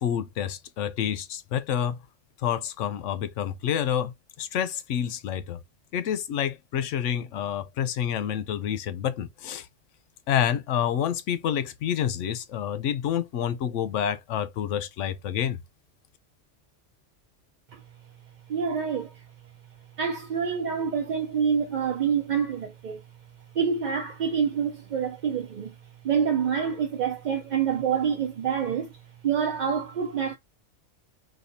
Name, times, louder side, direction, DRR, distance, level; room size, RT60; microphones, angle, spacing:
voice 1, 0.0-2.0 2.4-4.1 4.4-5.6 5.9-9.7 10.3-15.6, left 9 dB, 85° left, 1.0 m, -28 dB
voice 2, 18.5-19.2 20.0-23.0 23.5-25.7 26.0-28.9 29.2-30.3, right 7 dB, 55° right, 0.5 m, -27 dB
4.2 x 2.7 x 2.6 m
omnidirectional pair, 1.2 m